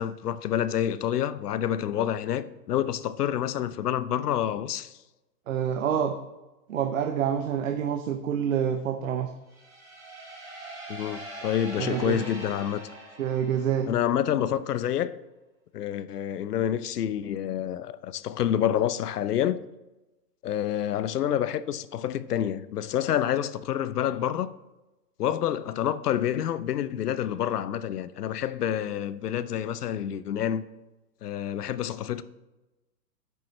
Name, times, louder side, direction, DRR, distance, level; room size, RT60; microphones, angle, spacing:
voice 1, 0.0-5.0 10.9-12.8 13.9-15.1 15.7-19.6 20.4-24.5 25.2-30.6 31.2-32.2, left 10 dB, 65° left, 0.7 m, -28 dB
voice 2, 5.5-6.1 6.7-9.3 11.8-12.2 13.2-13.9, right 8 dB, 50° right, 0.7 m, -27 dB
sound 1, 9.5-14.2, right 1 dB, 5° right, 1.7 m, -42 dB
10.0 x 7.0 x 3.2 m
hypercardioid pair, 160°, 50 cm